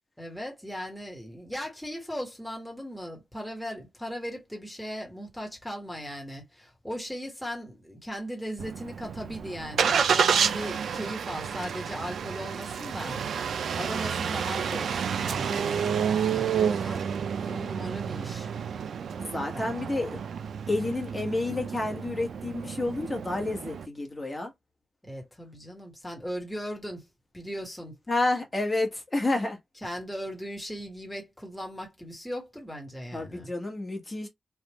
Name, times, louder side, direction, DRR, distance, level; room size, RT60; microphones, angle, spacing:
voice 1, 0.2-17.1 17.4-18.5 19.5-19.8 25.0-27.1 27.3-28.0 29.8-33.5, equal, ahead, 1.3 m, -38 dB
Engine starting, 8.6-23.9, right 7 dB, 90° right, 0.4 m, -30 dB
voice 2, 19.2-20.2 20.7-24.5 28.1-29.6 33.1-34.3, left 2 dB, 25° left, 1.3 m, -30 dB
3.4 x 2.4 x 3.0 m
wide cardioid pair, 115°, 0 cm